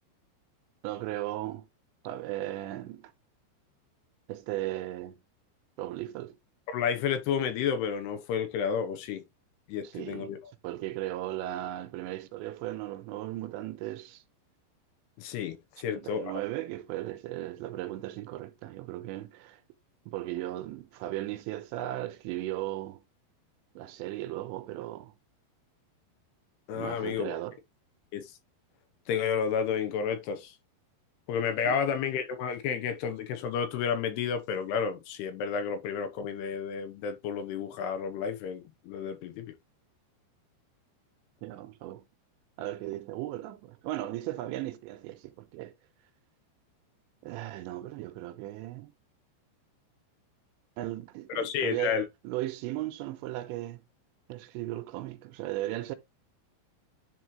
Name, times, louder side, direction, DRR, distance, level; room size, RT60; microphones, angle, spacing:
voice 1, 0.8-1.7 2.0-3.1 4.3-5.2 5.8-6.4 9.8-10.4 10.6-14.2 15.8-19.6 20.1-23.0 23.8-25.1 26.7-27.6 31.7-31.8 41.4-42.1 42.6-45.7 47.2-48.9 50.8-53.8 54.3-56.0, right 15 dB, 85° right, 2.9 m, -36 dB
voice 2, 6.7-9.2 9.7-10.4 15.2-16.3 26.7-27.4 28.1-28.3 29.1-30.5 31.3-39.5 51.3-52.0, left 7 dB, 75° left, 2.8 m, -31 dB
10.5 x 4.4 x 3.1 m
omnidirectional pair, 5.3 m